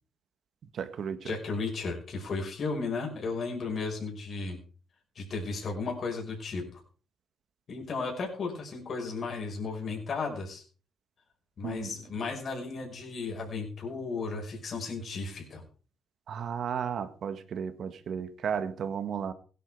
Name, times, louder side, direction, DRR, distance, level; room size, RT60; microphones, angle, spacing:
voice 1, 0.7-1.3 11.6-12.2 16.3-19.3, right 7 dB, 60° right, 1.7 m, -34 dB
voice 2, 1.2-4.6 5.2-6.8 7.7-10.6 11.6-15.7, left 4 dB, 50° left, 5.5 m, -34 dB
17.0 x 10.5 x 4.9 m
cardioid pair, 90°, 0 cm